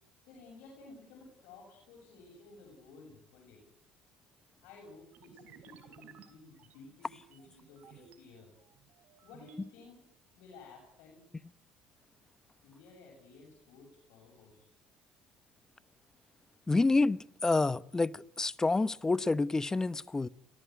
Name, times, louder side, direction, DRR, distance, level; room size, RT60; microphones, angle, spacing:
voice 1, 0.3-3.6 4.6-8.5 9.2-10.0 10.3-11.2 12.6-14.7, left 3 dB, 80° left, 7.1 m, -54 dB
sound 1, 5.1-8.2 8.7-9.7, right 9 dB, 65° right, 3.5 m, -58 dB
voice 2, 16.7-20.3, left 3 dB, 20° left, 0.9 m, -28 dB
27.0 x 18.5 x 9.5 m
supercardioid pair, 80°, 3 cm